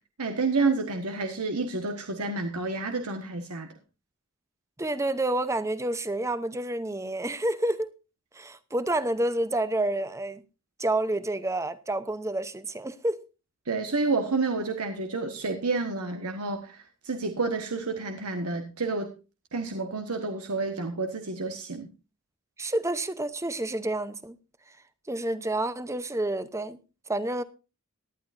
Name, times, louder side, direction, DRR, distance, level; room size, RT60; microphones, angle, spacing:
voice 1, 0.2-3.7 13.7-19.1 19.5-21.9, right 3 dB, 85° right, 1.4 m, -29 dB
voice 2, 4.8-7.9 8.3-10.4 10.8-13.2 22.6-24.4 25.1-26.8 27.1-27.4, right 1 dB, 15° right, 0.7 m, -29 dB
18.5 x 11.0 x 2.6 m
head